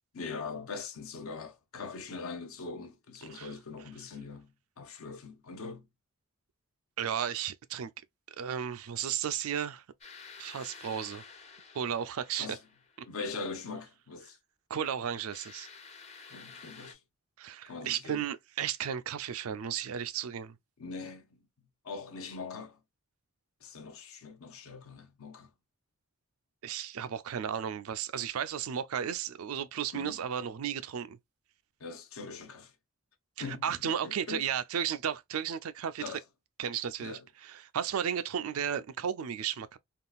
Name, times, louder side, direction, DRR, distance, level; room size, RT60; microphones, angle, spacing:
voice 1, 0.1-4.5 4.8-5.8 12.4-12.6 13.0-14.4 16.3-17.0 17.7-18.2 20.8-21.4 21.8-22.8 23.6-25.5 29.9-30.2 31.8-32.7 33.4-34.5 36.0-36.2 37.0-37.3, left 4 dB, 70° left, 0.7 m, -42 dB
voice 2, 3.2-3.5 7.0-7.9 8.4-9.8 10.4-11.2 11.7-12.6 14.7-15.7 17.4-20.6 26.6-31.2 33.4-36.2 36.6-39.8, right 8 dB, 70° right, 0.4 m, -34 dB
sound 1, 10.0-13.2 15.3-16.9, left 5 dB, 30° left, 0.7 m, -51 dB
3.6 x 2.4 x 2.3 m
head